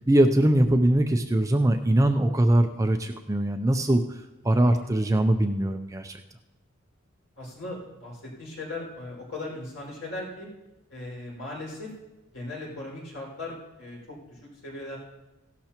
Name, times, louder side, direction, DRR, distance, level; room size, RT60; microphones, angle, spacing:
voice 1, 0.1-4.0 4.4-6.2, right 1 dB, 15° right, 6 dB, 0.4 m, -22 dB
voice 2, 4.6-4.9 7.4-10.5 10.9-11.9 12.3-15.0, left 2 dB, 60° left, -5 dB, 5.3 m, -38 dB
16.5 x 12.0 x 3.0 m, 1.0 s
head